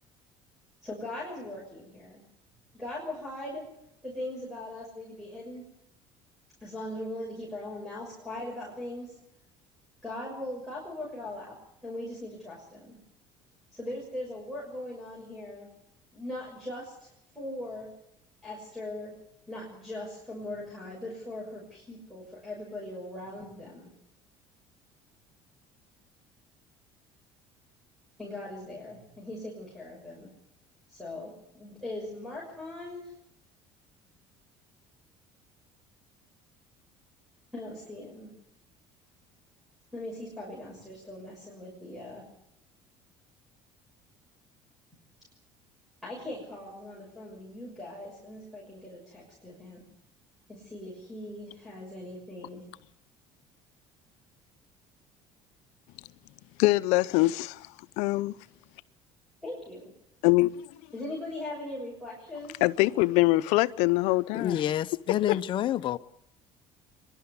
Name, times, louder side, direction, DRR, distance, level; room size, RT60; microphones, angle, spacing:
voice 1, 0.8-2.2 2.7-3.6 4.0-5.6 6.6-9.2 10.0-11.5 11.8-13.0 13.7-15.7 16.1-17.1 17.3-17.9 18.4-19.1 19.5-23.9 28.2-30.3 30.9-33.1 37.5-38.3 39.9-42.2 46.0-49.9 50.5-52.6 59.4-59.9 60.9-62.6, left 1 dB, ahead, 6.3 m, -40 dB
voice 2, 56.6-57.7 58.0-58.3 60.2-60.5 62.6-64.6 65.3-65.4, left 20 dB, 80° left, 0.7 m, -23 dB
voice 3, 64.3-66.0, left 11 dB, 45° left, 0.8 m, -28 dB
24.0 x 12.0 x 9.7 m
cardioid pair, 125°, 12 cm